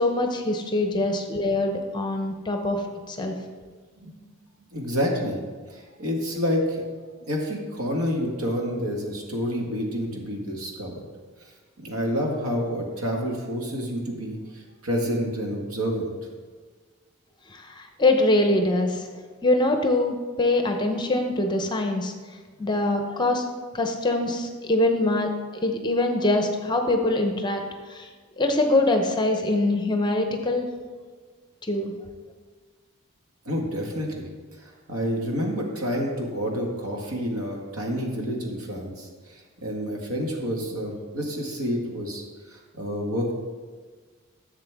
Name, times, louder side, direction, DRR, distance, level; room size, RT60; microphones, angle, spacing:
voice 1, 0.0-2.8 3.1-3.3 17.5-19.0 19.4-22.1 22.6-23.4 23.7-27.6 27.9-28.1 28.4-30.7 31.7-31.9, left 2 dB, 20° left, 4 dB, 0.7 m, -23 dB
voice 2, 4.7-5.4 5.7-6.8 7.3-10.9 11.8-16.1 33.5-34.2 34.9-39.1 39.6-43.3, equal, 80° right, 0 dB, 1.7 m, -28 dB
11.0 x 7.3 x 3.5 m, 1.5 s
head